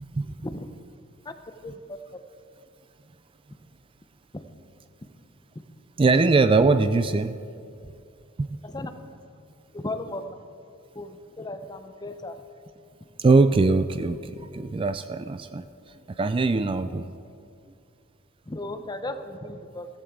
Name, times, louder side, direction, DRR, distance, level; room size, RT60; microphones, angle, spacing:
voice 1, 1.6-2.0 4.3-4.4 8.6-8.9 9.7-10.4 10.9-12.4 18.5-19.9, left 2 dB, 20° left, 9 dB, 0.7 m, -35 dB
voice 2, 6.0-7.4 8.4-8.5 13.2-15.6 16.2-17.1, right 3 dB, 25° right, 11 dB, 0.3 m, -21 dB
15.0 x 14.5 x 3.7 m, 2.6 s
head